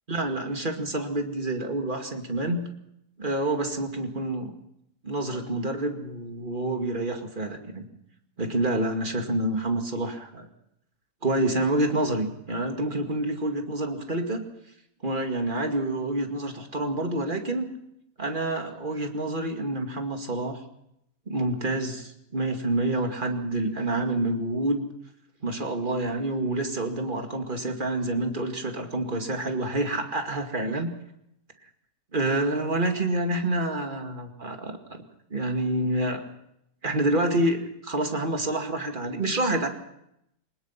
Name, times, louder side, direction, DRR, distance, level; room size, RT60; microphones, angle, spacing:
voice 1, 0.1-2.7 3.2-4.5 5.0-7.9 8.4-10.5 11.2-14.4 15.0-17.7 18.2-20.6 21.3-24.8 25.4-30.9 32.1-35.0 35.3-36.2 36.8-39.7, right 1 dB, 30° right, 5 dB, 2.4 m, -28 dB
23.0 x 19.5 x 5.9 m, 0.78 s
omnidirectional pair, 1.6 m